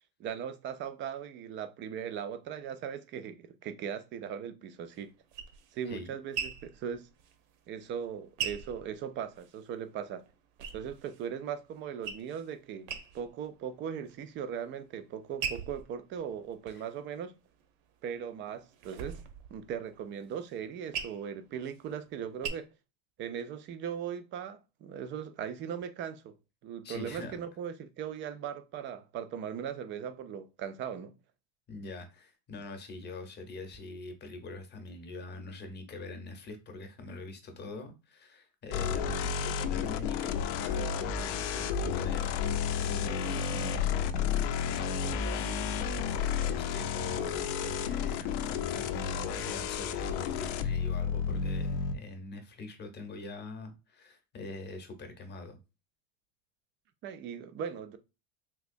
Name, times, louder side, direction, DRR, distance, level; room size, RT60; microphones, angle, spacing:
voice 1, 0.2-5.1 5.7-7.1 7.7-10.3 10.7-17.3 18.0-19.2 19.5-22.7 23.2-26.3 26.6-31.1 57.0-58.0, right 8 dB, 30° right, 0.4 m, -39 dB
sound 1, 4.9-9.7 10.0-11.3 11.7-12.5 12.8-13.5 13.9-14.5 15.0-17.7 18.2-22.5, right 7 dB, 60° right, 0.7 m, -41 dB
voice 2, 26.8-27.4 31.7-44.3 44.7-55.6, left 3 dB, 25° left, 0.8 m, -43 dB
sound 2, 38.7-51.9, left 7 dB, 65° left, 0.5 m, -32 dB
3.4 x 2.9 x 2.5 m
supercardioid pair, 120°, 40 cm